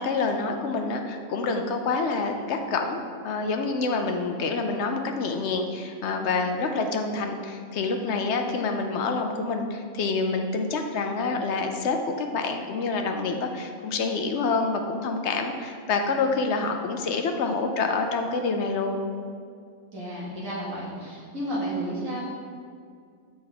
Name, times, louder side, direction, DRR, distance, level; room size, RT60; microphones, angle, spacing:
voice 1, 0.0-19.0, left 4 dB, 65° left, 5 dB, 0.7 m, -27 dB
voice 2, 19.9-22.2, right 1 dB, 65° right, -6 dB, 2.0 m, -32 dB
7.6 x 5.4 x 3.4 m, 2.2 s
omnidirectional pair, 1.6 m